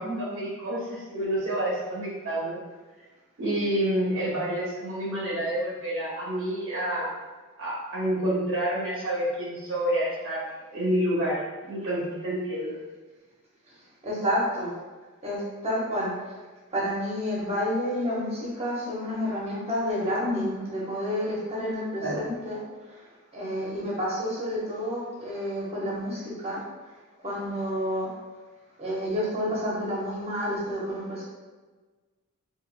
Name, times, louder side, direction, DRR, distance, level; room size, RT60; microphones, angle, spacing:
voice 1, 0.0-2.6 3.4-7.2 7.6-10.5 10.7-11.4 11.7-12.8 22.0-22.3, right 1 dB, 60° right, -6 dB, 0.8 m, -28 dB
voice 2, 14.0-14.7 15.2-16.1 16.7-22.6 22.9-23.0 23.3-26.6 27.2-28.1 28.8-31.2, equal, 30° right, -6 dB, 1.0 m, -29 dB
4.2 x 2.5 x 2.2 m, 1.3 s
head